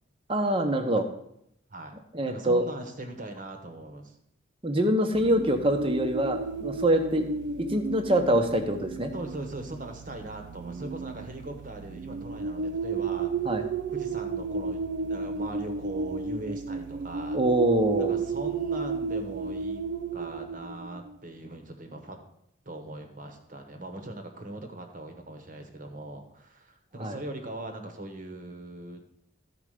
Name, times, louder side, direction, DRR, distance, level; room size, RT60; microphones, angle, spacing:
voice 1, 0.3-1.0 2.1-2.6 4.6-7.3 7.6-9.1 13.4-13.6 17.3-18.2 27.0-27.2, right 1 dB, 25° right, 5 dB, 0.9 m, -25 dB
voice 2, 2.2-4.1 9.1-13.3 13.9-17.4 18.0-19.8 20.1-22.2 22.6-29.0, right 2 dB, 40° right, 5 dB, 1.2 m, -40 dB
sound 1, 5.1-21.1, right 4 dB, 60° right, 0.3 m, -33 dB
12.5 x 4.9 x 4.9 m, 0.75 s
head